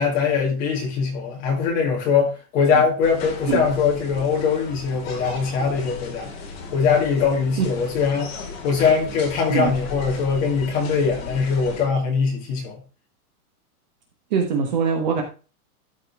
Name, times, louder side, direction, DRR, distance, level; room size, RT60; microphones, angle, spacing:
voice 1, 0.0-6.3 6.7-8.3 8.6-12.8, left 5 dB, 20° left, 2.1 m, -22 dB
sound 1, 3.0-11.9, left 4 dB, 40° left, 2.3 m, -36 dB
voice 2, 14.3-15.2, right 6 dB, 30° right, 1.0 m, -22 dB
12.5 x 5.3 x 3.5 m
supercardioid pair, 180°, 45 cm